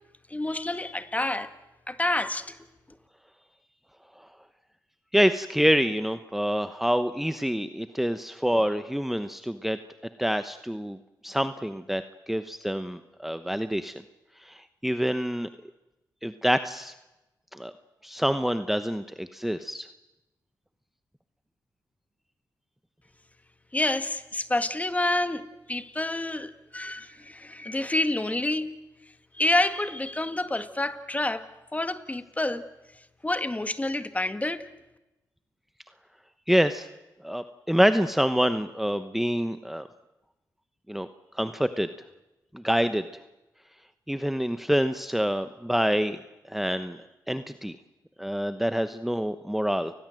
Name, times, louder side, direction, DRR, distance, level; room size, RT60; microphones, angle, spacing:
voice 1, 0.3-1.5 1.9-2.6 23.7-28.7 29.3-32.7 33.2-34.6, left 2 dB, 20° left, 1.7 m, -28 dB
voice 2, 5.1-9.8 10.2-11.0 11.2-12.0 12.3-13.9 14.4-15.5 16.2-16.9 17.5-17.7 18.0-19.9 36.5-36.9 37.2-39.9 40.9-41.1 41.3-41.9 42.5-43.0 44.1-46.2 46.5-47.0 47.3-47.8 48.2-49.9, equal, 5° right, 1.0 m, -26 dB
29.5 x 20.0 x 7.8 m
cardioid pair, 60°, 7 cm